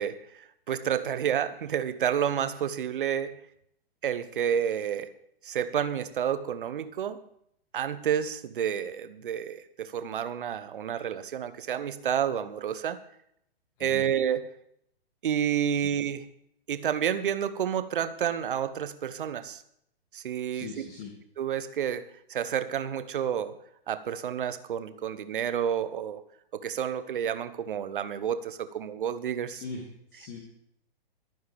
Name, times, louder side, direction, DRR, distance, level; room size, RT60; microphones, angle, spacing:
voice 1, 0.0-3.4 4.0-5.1 5.4-7.2 7.7-13.0 13.8-14.4 15.2-16.2 16.7-19.6 20.1-20.7 21.4-23.5 23.9-26.2 26.5-29.6, right 9 dB, 55° right, 12 dB, 1.2 m, -30 dB
voice 2, 20.5-21.1 29.5-30.4, left 4 dB, 40° left, 0 dB, 2.7 m, -41 dB
23.0 x 9.3 x 3.6 m, 0.72 s
figure-of-eight pair, 115°, 30 cm